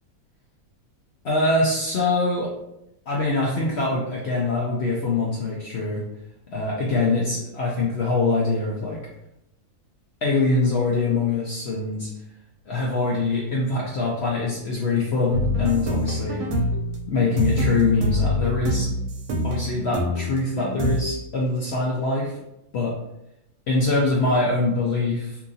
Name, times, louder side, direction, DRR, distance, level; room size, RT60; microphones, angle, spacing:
voice 1, 1.2-2.5 3.1-6.0 6.5-9.0 10.2-12.1 12.7-16.4 17.1-18.9 19.4-22.4 22.7-22.9 23.7-25.4, left 3 dB, 65° left, -3 dB, 0.6 m, -23 dB
sound 1, 15.3-21.0, left 1 dB, 90° right, 1.1 m, -25 dB
2.8 x 2.4 x 2.6 m, 0.84 s
omnidirectional pair, 1.6 m